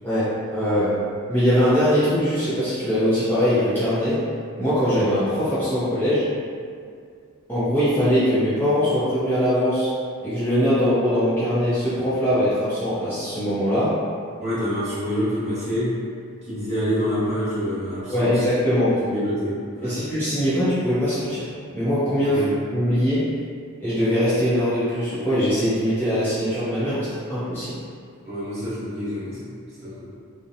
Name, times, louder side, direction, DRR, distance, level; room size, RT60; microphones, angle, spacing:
voice 1, 0.0-1.0 1.3-4.2 4.6-6.3 7.5-9.9 10.2-14.0 18.1-19.0 19.8-21.5 21.7-22.4 22.7-23.3 23.8-27.8, equal, 10° left, -14 dB, 0.6 m, -21 dB
voice 2, 14.4-15.9 16.5-18.4 19.0-20.0 22.2-22.6 28.2-29.5 29.8-30.0, equal, 30° right, -13 dB, 1.1 m, -27 dB
2.7 x 2.1 x 2.5 m, 2.2 s
head